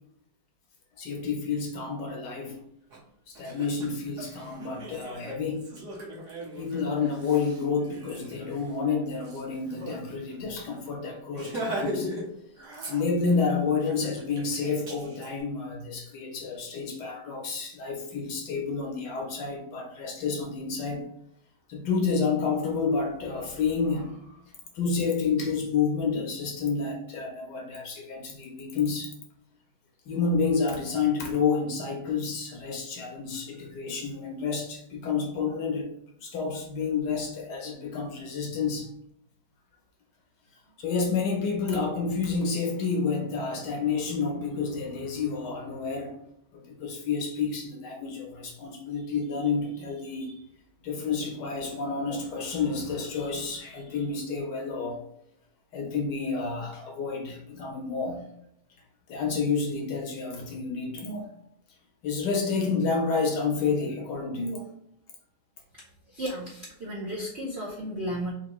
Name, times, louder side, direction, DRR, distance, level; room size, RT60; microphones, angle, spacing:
voice 1, 1.0-2.6 3.3-5.6 6.6-12.1 12.9-21.0 21.7-24.4 24.7-29.1 30.1-35.9 36.2-38.9 40.8-46.2 46.5-50.3 50.8-55.0 55.7-58.3 59.1-61.3 62.0-64.7, left 5 dB, 65° left, 1.2 m, -29 dB
Laughter, 2.9-3.0 3.4-10.0 10.3-10.4 10.7-10.9 11.3-12.3 12.6-13.4 13.8-15.3, right 1 dB, 50° right, 1.0 m, -39 dB
voice 2, 66.1-68.3, equal, 75° right, 0.6 m, -34 dB
4.4 x 2.7 x 3.0 m
omnidirectional pair, 2.2 m